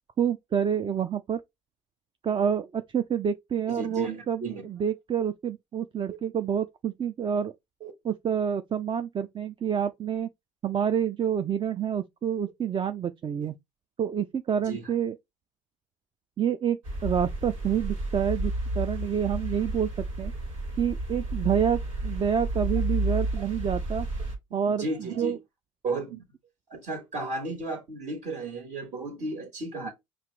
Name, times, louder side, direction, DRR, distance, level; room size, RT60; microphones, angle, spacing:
voice 1, 0.2-1.4 2.2-7.5 8.0-10.3 10.6-13.5 14.0-15.2 16.4-20.3 20.8-24.1 24.5-25.4, right 8 dB, 30° right, 0.5 m, -28 dB
voice 2, 3.7-4.7 7.8-7.9 14.6-14.9 24.7-25.4 25.8-26.2 26.7-29.9, right 3 dB, 55° right, 1.8 m, -34 dB
sound 1, 16.8-24.4, right 1 dB, 85° right, 1.7 m, -31 dB
5.7 x 2.5 x 3.3 m
hypercardioid pair, 70°, 16 cm